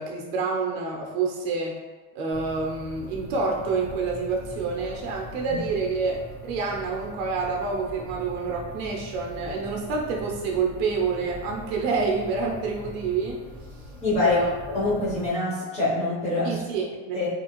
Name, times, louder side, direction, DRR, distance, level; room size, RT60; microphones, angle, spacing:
voice 1, 0.0-1.8 2.1-13.4 13.7-13.8 14.2-14.5 16.4-17.2, right 4 dB, 55° right, -1 dB, 0.6 m, -28 dB
sound 1, 2.3-15.3, left 1 dB, 55° left, 1.4 m, -42 dB
voice 2, 14.0-14.4 14.7-16.6 17.1-17.3, left 2 dB, 15° left, -9 dB, 1.0 m, -25 dB
2.8 x 2.5 x 2.9 m, 1.3 s
supercardioid pair, 160°, 38 cm